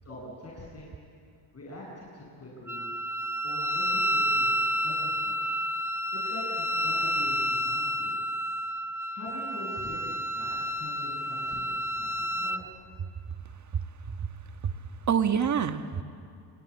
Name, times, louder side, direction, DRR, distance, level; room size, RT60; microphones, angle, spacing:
voice 1, 0.0-1.0 1.5-2.9 3.4-4.5 4.8-5.3 6.1-8.2 9.1-12.8, left 1 dB, 35° left, -4 dB, 8.0 m, -43 dB
Wind instrument woodwind instrument, 2.7-12.6, equal, 5° right, 0.8 m, -30 dB
voice 2, 13.7-14.3 14.6-14.7 15.1-16.0, right 7 dB, 40° right, 8 dB, 1.5 m, -27 dB
29.5 x 22.0 x 8.7 m, 2.4 s
cardioid pair, 95°, 45 cm